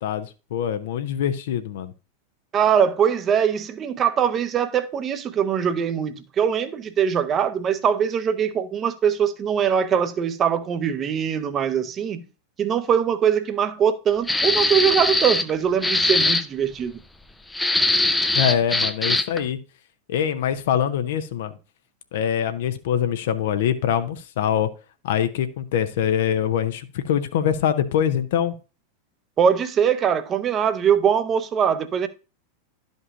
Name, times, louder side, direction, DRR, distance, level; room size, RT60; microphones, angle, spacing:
voice 1, 0.0-1.9 18.3-19.6 20.1-21.6 22.1-24.7 25.0-28.6, left 9 dB, 55° left, 0.7 m, -24 dB
voice 2, 2.5-12.2 12.6-17.0 29.4-32.1, right 8 dB, 25° right, 0.7 m, -22 dB
sound 1, 14.3-15.5 15.8-16.4 17.5-19.4, left 2 dB, 5° left, 0.5 m, -21 dB
12.0 x 5.3 x 2.6 m
figure-of-eight pair, 90°, 0 cm